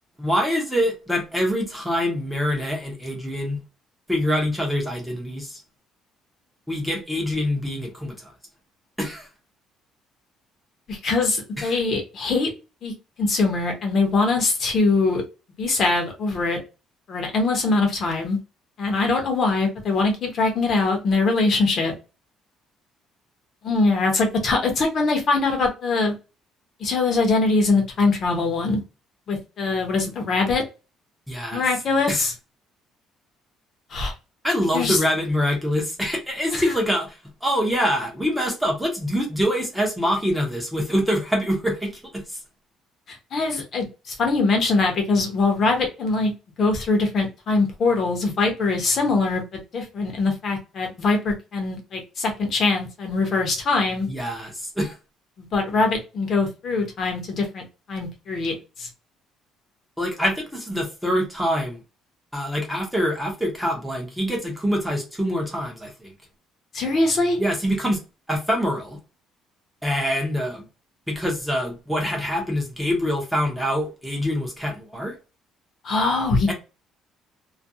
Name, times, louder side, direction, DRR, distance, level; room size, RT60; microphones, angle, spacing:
voice 1, 0.2-3.6 4.1-5.6 6.7-8.3 9.0-9.3 11.6-11.8 31.3-31.6 32.1-32.2 34.4-42.4 54.1-55.0 60.0-61.8 62.3-66.1 67.4-68.0 68.3-69.0 69.8-70.7 71.1-75.2 76.5-76.6, equal, ahead, 0.6 m, -25 dB
voice 2, 10.9-12.5 12.8-12.9 13.2-15.2 15.6-16.6 17.1-18.4 18.8-21.9 23.6-26.1 26.8-28.8 29.3-30.6 31.5-32.3 33.9-34.1 34.7-35.0 36.5-36.7 43.1-46.3 46.6-54.1 55.4-57.6 57.9-58.9 66.7-67.4 75.8-76.5, left 3 dB, 40° left, 0.6 m, -22 dB
2.3 x 2.2 x 2.6 m
cardioid pair, 170°, 0 cm